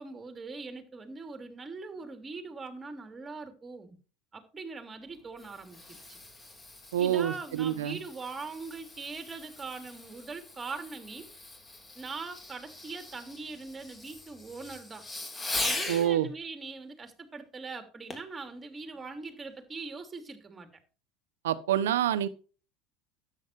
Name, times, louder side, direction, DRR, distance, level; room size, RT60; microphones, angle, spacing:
voice 1, 0.0-4.0 4.3-6.2 7.0-11.3 11.9-15.1 15.6-20.7, right 4 dB, 20° right, 3.1 m, -41 dB
Fireworks, 5.1-16.1 18.1-18.4 19.0-19.1, left 2 dB, 20° left, 3.6 m, -40 dB
voice 2, 6.9-8.0 15.9-16.3 21.4-22.3, right 11 dB, 80° right, 1.0 m, -27 dB
13.0 x 9.5 x 3.2 m
hypercardioid pair, 80°, 0 cm